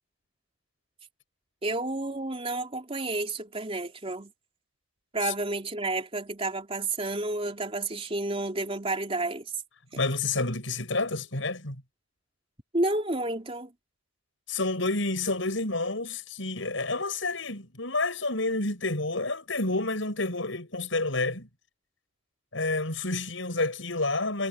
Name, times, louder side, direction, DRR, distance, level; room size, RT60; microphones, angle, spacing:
voice 1, 1.6-4.3 5.1-9.4 12.7-13.7, right 2 dB, 30° right, 3.3 m, -30 dB
voice 2, 9.9-11.8 14.5-21.5 22.5-24.5, left 2 dB, 75° left, 7.1 m, -29 dB
head